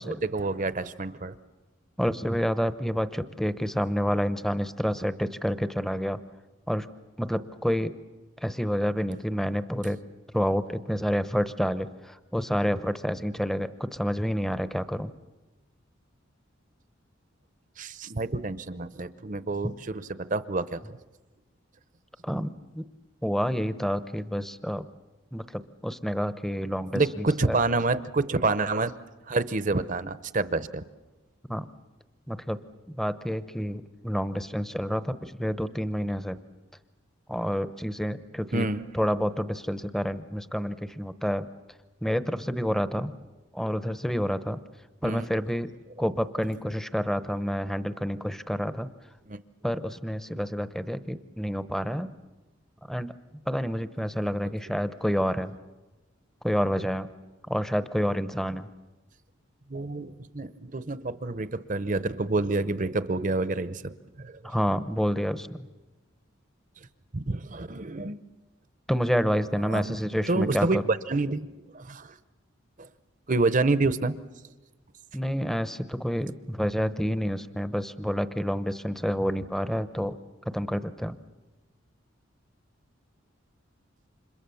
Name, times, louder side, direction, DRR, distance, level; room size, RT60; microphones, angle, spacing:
voice 1, 0.0-1.3 17.8-21.0 26.9-28.9 29.3-30.8 38.5-38.8 45.0-45.3 49.3-49.4 59.7-64.5 67.1-68.2 69.7-70.0 70.3-72.2 72.8-72.9 73.3-74.2, right 3 dB, 40° right, 14 dB, 0.8 m, -28 dB
voice 2, 2.0-6.2 6.7-6.9 7.2-7.9 8.4-10.0 10.3-15.1 19.6-19.7 22.2-22.9 23.2-24.8 25.3-27.6 31.5-31.7 32.3-32.6 32.9-36.4 37.3-38.7 38.9-41.4 42.0-43.1 43.5-44.6 45.0-45.7 46.0-48.9 49.6-52.1 52.9-53.1 53.5-55.5 56.4-57.1 57.5-58.7 64.4-65.7 68.9-70.8 75.1-80.2 80.5-81.2, equal, ahead, 12 dB, 0.8 m, -28 dB
29.5 x 26.5 x 7.1 m, 1.2 s
head